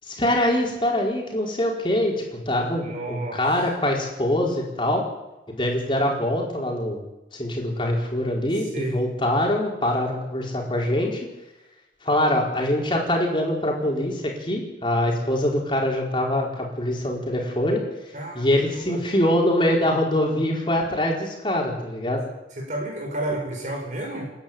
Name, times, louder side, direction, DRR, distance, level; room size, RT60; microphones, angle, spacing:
voice 1, 0.1-2.1 2.5-5.0 5.5-7.0 7.3-11.2 12.0-17.8 18.3-22.2, left 1 dB, 30° left, -1 dB, 4.7 m, -24 dB
voice 2, 2.8-3.4 8.6-9.0 18.1-19.0 22.5-24.3, right 1 dB, 45° right, 2 dB, 5.5 m, -31 dB
29.0 x 10.5 x 9.0 m, 0.99 s
head